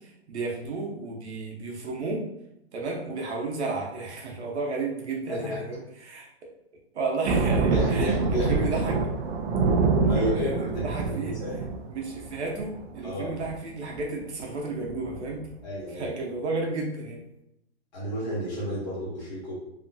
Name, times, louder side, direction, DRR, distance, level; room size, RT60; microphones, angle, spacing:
voice 1, 0.0-2.3 2.7-6.3 6.9-9.0 10.0-11.4 11.9-15.4 15.9-17.2, right 3 dB, 90° right, 0 dB, 0.9 m, -32 dB
voice 2, 5.3-5.6 7.7-8.8 10.0-11.6 13.0-13.4 15.6-16.1 17.9-19.5, equal, 40° left, -7 dB, 1.4 m, -31 dB
sound 1, 7.2-13.0 13.3-13.6 13.9-14.2 14.5-14.6 14.8-15.5, right 4 dB, 65° right, 0.5 m, -26 dB
2.9 x 2.2 x 2.5 m, 0.84 s
hypercardioid pair, 170°, 33 cm